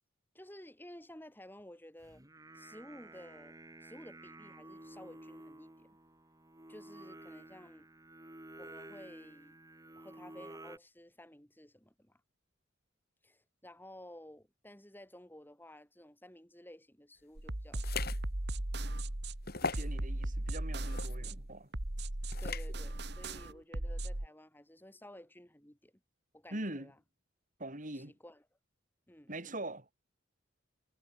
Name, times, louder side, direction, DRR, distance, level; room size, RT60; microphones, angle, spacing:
voice 1, 0.3-2.2 2.5-6.0 6.7-7.9 8.6-9.6 10.0-12.2 13.2-18.1 22.4-25.9 26.3-26.9 27.9-28.4 29.1-29.3, left 1 dB, 10° left, 5.5 m, -54 dB
Singing, 2.0-10.8, right 1 dB, 20° right, 2.8 m, -52 dB
sound 1, 17.4-24.3, right 1 dB, 55° right, 2.1 m, -37 dB
sound 2, 17.8-18.2 18.7-18.8 19.5-19.9 20.8-21.2 22.3-22.7, left 4 dB, 50° left, 5.5 m, -38 dB
voice 2, 19.6-21.7 22.3-22.4 23.4-23.6 26.5-26.9 27.6-28.1 29.3-29.9, right 1 dB, 40° right, 4.3 m, -43 dB
head